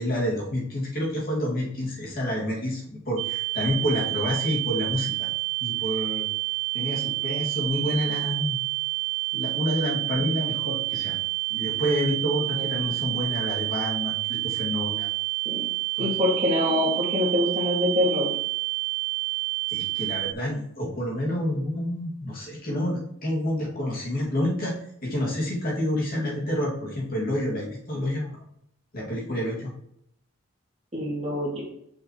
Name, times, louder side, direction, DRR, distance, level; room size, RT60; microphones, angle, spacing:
voice 1, 0.0-5.3 5.6-6.3 6.7-8.6 9.3-11.2 11.5-15.1 16.0-16.2 19.7-28.3 28.9-29.7, left 1 dB, 45° left, -4 dB, 2.2 m, -28 dB
sound 1, 3.2-20.3, right 31 dB, 75° right, 0.3 m, -29 dB
voice 2, 16.0-18.3 30.9-31.6, left 1 dB, 30° right, -3 dB, 2.0 m, -25 dB
6.3 x 5.7 x 3.1 m, 0.71 s
head